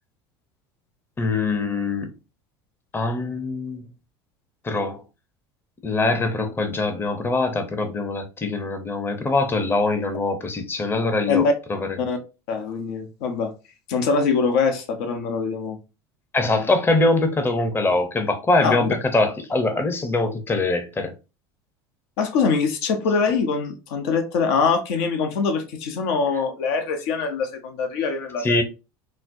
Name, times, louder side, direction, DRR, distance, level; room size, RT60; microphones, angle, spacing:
voice 1, 1.2-2.1 2.9-3.8 4.6-5.0 5.8-12.0 16.3-21.1 28.4-28.6, left 2 dB, 15° left, 0.6 m, -23 dB
voice 2, 12.5-13.5 13.9-15.8 18.6-18.9 22.2-28.6, left 5 dB, 75° left, 0.7 m, -23 dB
4.1 x 2.0 x 2.5 m
hypercardioid pair, 95°, 13 cm